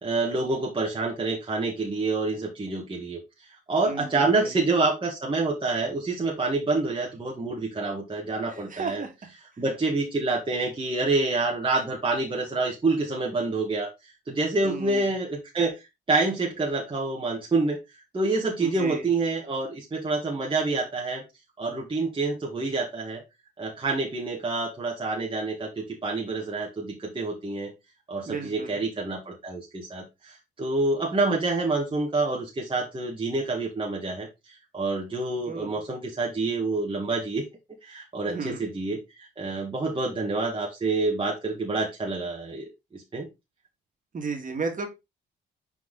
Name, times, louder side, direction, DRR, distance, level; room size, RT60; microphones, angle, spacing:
voice 1, 0.0-9.0 9.6-15.8 16.1-17.8 18.1-21.2 21.6-23.2 23.6-27.7 28.1-37.4 37.8-43.3, right 3 dB, 25° right, -1 dB, 1.6 m, -27 dB
voice 2, 3.9-4.5 8.5-9.1 14.6-15.1 18.6-19.1 28.3-28.8 35.5-35.7 38.3-38.6 44.1-44.9, right 4 dB, 40° right, 4 dB, 2.2 m, -34 dB
6.0 x 4.6 x 3.8 m, 0.23 s
cardioid pair, 90°, 20 cm